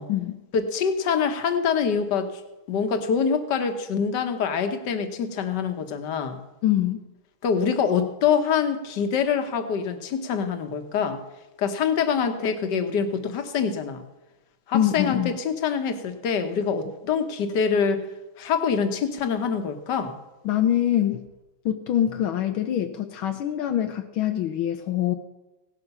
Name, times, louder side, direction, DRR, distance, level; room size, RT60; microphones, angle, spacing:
voice 1, 0.5-2.4 2.7-6.4 7.4-11.2 11.6-14.0 14.7-18.0 18.4-20.1, left 6 dB, 60° left, 7 dB, 1.8 m, -25 dB
voice 2, 6.6-7.0 14.7-15.3 20.4-21.3 21.6-25.1, left 11 dB, 80° left, 6 dB, 1.6 m, -24 dB
17.5 x 12.0 x 5.5 m, 1.0 s
omnidirectional pair, 2.2 m